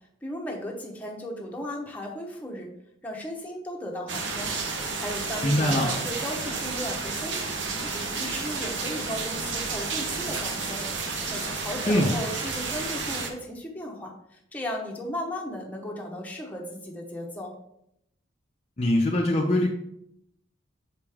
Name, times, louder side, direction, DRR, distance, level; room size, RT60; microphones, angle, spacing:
voice 1, 0.2-2.7 3.0-4.5 5.0-17.5, left 1 dB, 10° left, -1 dB, 0.9 m, -36 dB
sound 1, 4.1-13.3, right 4 dB, 65° right, 0.9 m, -31 dB
voice 2, 5.4-5.9 11.9-12.1 18.8-19.7, left 1 dB, 30° left, 0 dB, 0.6 m, -22 dB
5.8 x 5.1 x 3.5 m, 0.77 s
head